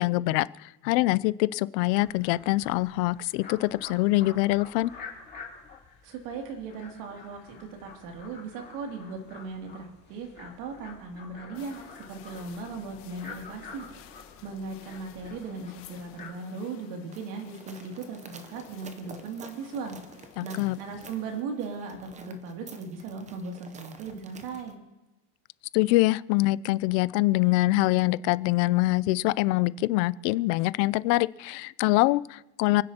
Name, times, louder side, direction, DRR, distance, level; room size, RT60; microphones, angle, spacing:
voice 1, 0.0-4.9 20.4-20.8 25.7-32.8, left 19 dB, 90° left, 19 dB, 0.6 m, -24 dB
sound 1, 2.0-16.3, left 5 dB, 20° left, 2.8 m, -48 dB
voice 2, 6.0-13.8 14.4-20.0 20.4-24.8, right 4 dB, 70° right, 2 dB, 2.7 m, -38 dB
sound 2, 11.5-21.4, left 11 dB, 70° left, 1.5 m, -53 dB
sound 3, 17.1-24.8, right 3 dB, 15° right, 0.6 m, -50 dB
29.0 x 9.7 x 2.9 m, 1.0 s
cardioid pair, 160°, 49 cm